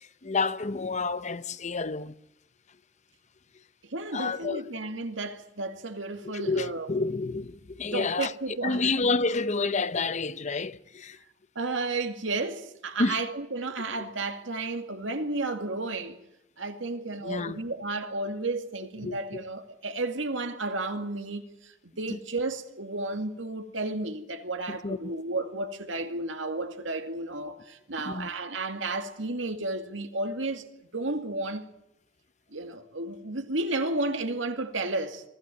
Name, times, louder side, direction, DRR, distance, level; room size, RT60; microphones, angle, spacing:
voice 1, 0.2-2.1 4.1-4.6 6.3-8.3 8.6-11.2 13.0-13.2 17.2-17.6 19.0-19.4 24.7-25.1 28.0-28.3, left 3 dB, 40° left, 0.7 m, -29 dB
voice 2, 3.9-6.9 7.9-8.9 11.6-16.2 16.6-30.6 30.9-31.6 32.5-35.2, right 2 dB, 80° right, 2.3 m, -32 dB
24.0 x 15.5 x 9.1 m
head